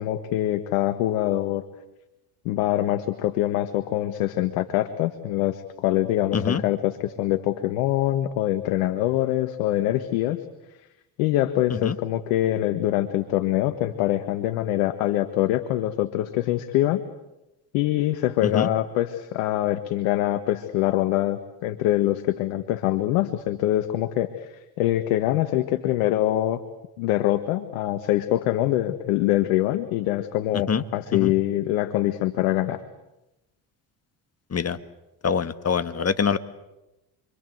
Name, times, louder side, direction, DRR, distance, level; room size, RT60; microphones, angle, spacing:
voice 1, 0.0-1.6 2.4-10.4 11.2-17.0 17.7-26.6 27.0-32.8, left 14 dB, 80° left, 9 dB, 1.7 m, -24 dB
voice 2, 35.2-36.4, left 6 dB, 30° left, 11 dB, 1.9 m, -24 dB
29.5 x 24.0 x 8.0 m, 0.95 s
supercardioid pair, 70°, 47 cm